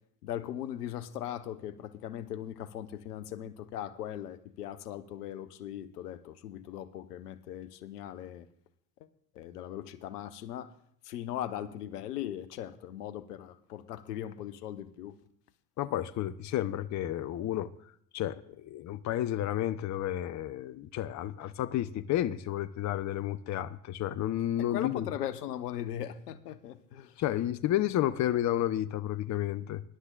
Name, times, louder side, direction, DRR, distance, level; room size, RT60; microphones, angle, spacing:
voice 1, 0.2-8.5 9.3-10.7 11.0-15.2 24.6-27.2, left 11 dB, 80° left, 1.0 m, -39 dB
voice 2, 15.8-17.7 18.1-25.1 27.2-29.8, left 12 dB, 40° left, 0.7 m, -31 dB
21.0 x 11.5 x 2.4 m
hypercardioid pair, 70°, 47 cm